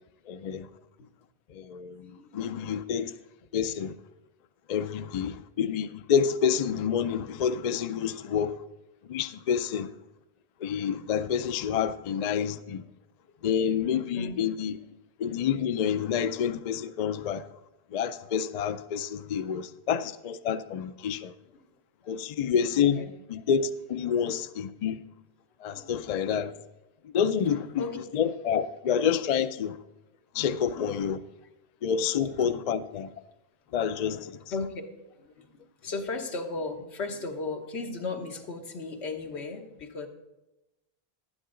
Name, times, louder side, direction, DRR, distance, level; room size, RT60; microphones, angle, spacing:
voice 1, 0.3-0.7 1.5-3.1 3.5-3.9 4.7-8.6 9.1-9.9 10.6-12.8 13.4-14.8 15.2-17.4 17.9-21.3 22.1-23.0 23.3-25.0 25.6-26.5 27.1-27.8 28.1-29.8 30.3-31.2 31.8-33.1 33.7-34.3, left 8 dB, 55° left, 0.4 m, -28 dB
voice 2, 2.0-3.0 8.0-8.2 13.3-13.4 14.0-14.5 19.3-19.7 22.0-22.4 22.8-23.1 23.9-24.1 25.7-25.9 26.5-26.6 27.5-28.0 28.5-28.6 30.3-30.5 30.8-31.1 32.4-32.8 34.1-34.8 35.1-40.1, left 3 dB, 90° left, 1.4 m, -37 dB
11.5 x 9.7 x 3.8 m
omnidirectional pair, 1.1 m